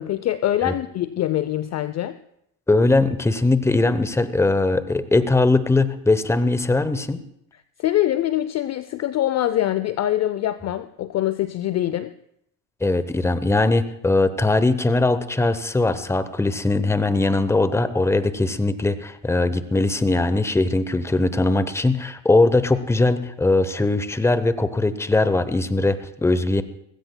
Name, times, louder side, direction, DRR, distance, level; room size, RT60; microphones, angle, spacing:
voice 1, 0.0-2.2 7.8-12.1, left 13 dB, 35° left, 14 dB, 0.5 m, -24 dB
voice 2, 2.7-7.2 12.8-26.6, left 2 dB, 5° left, 13 dB, 0.8 m, -20 dB
19.5 x 16.0 x 2.2 m, 0.76 s
hypercardioid pair, 85°, 49 cm